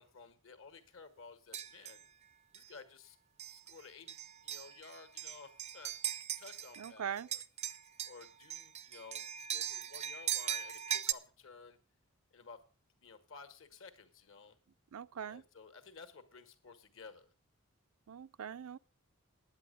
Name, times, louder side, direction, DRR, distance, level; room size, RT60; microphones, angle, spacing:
voice 1, 0.0-2.1 2.5-3.2 3.5-4.2 4.4-5.9 6.4-7.4 8.0-11.8 12.3-12.6 13.0-14.6 15.3-17.3, left 4 dB, 60° left, 1.6 m, -54 dB
sound 1, 1.5-2.0 2.5-2.7 3.4-3.7 4.1-6.9 7.2-11.1, right 10 dB, 30° right, 0.5 m, -39 dB
voice 2, 6.8-7.3 14.9-15.4 18.1-18.8, right 8 dB, 85° right, 0.5 m, -41 dB
9.9 x 8.5 x 6.7 m
head